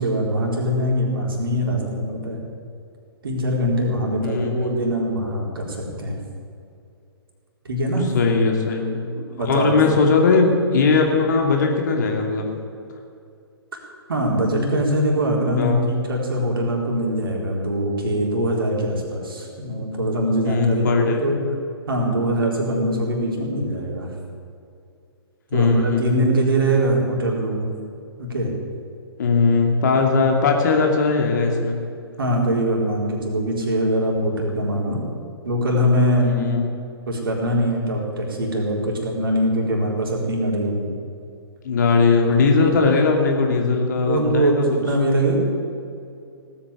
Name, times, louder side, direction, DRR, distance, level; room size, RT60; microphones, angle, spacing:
voice 1, 0.0-2.4 3.2-6.2 7.6-8.1 9.4-9.8 13.7-13.8 14.1-21.4 21.9-24.1 25.5-27.7 28.2-28.5 32.2-35.0 35.4-36.6 37.1-40.9 44.0-45.4, right 1 dB, 60° right, -1 dB, 4.0 m, -22 dB
voice 2, 4.2-4.7 8.1-12.5 15.6-15.9 20.4-21.3 25.5-26.3 29.2-31.8 36.2-36.6 41.6-44.6, left 4 dB, 45° left, 2 dB, 2.5 m, -19 dB
17.5 x 8.7 x 8.1 m, 2.5 s
figure-of-eight pair, 125°, 13 cm